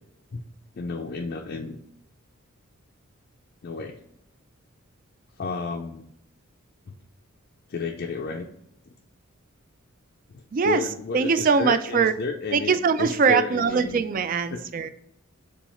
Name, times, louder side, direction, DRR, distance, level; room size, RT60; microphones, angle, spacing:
voice 1, 0.7-1.8 3.6-4.0 5.4-6.0 6.9-7.0 7.7-8.5 10.3-14.0 14.5-14.6, left 5 dB, 50° left, 1 dB, 0.4 m, -32 dB
voice 2, 10.5-10.9 11.1-12.1 12.5-14.9, right 5 dB, 40° right, 12 dB, 0.3 m, -22 dB
7.0 x 2.3 x 3.0 m, 0.76 s
head